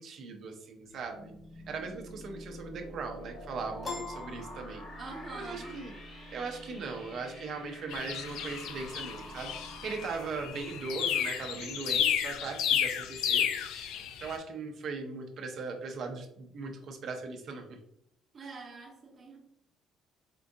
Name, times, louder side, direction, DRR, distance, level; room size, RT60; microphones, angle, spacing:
voice 1, 0.0-1.3 1.7-4.8 5.3-5.9 6.3-13.5 14.2-17.8 18.4-18.5, right 4 dB, 50° right, 3 dB, 0.5 m, -39 dB
sound 1, 0.9-12.6, equal, 45° left, 1.4 m, -48 dB
Piano, 3.8-5.4, left 3 dB, 20° left, 0.7 m, -41 dB
voice 2, 5.0-5.8 18.3-19.4, right 3 dB, 30° right, 0 dB, 0.9 m, -44 dB
sound 2, 7.9-14.4, left 9 dB, 85° left, 0.3 m, -32 dB
4.4 x 2.5 x 2.6 m, 0.71 s
cardioid pair, 165°, 0 cm